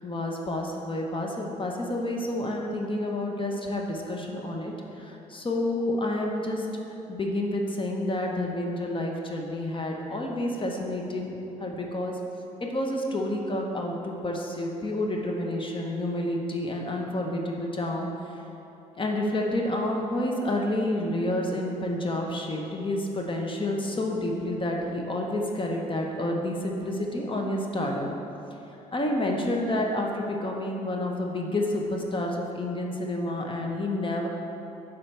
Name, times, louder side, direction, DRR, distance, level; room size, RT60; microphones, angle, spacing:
voice 1, 0.0-6.7 7.1-12.2 12.6-18.1 19.0-28.1 28.9-34.3, left 1 dB, 30° left, 0 dB, 1.0 m, -29 dB
8.7 x 5.5 x 3.4 m, 2.9 s
hypercardioid pair, 55°, 17 cm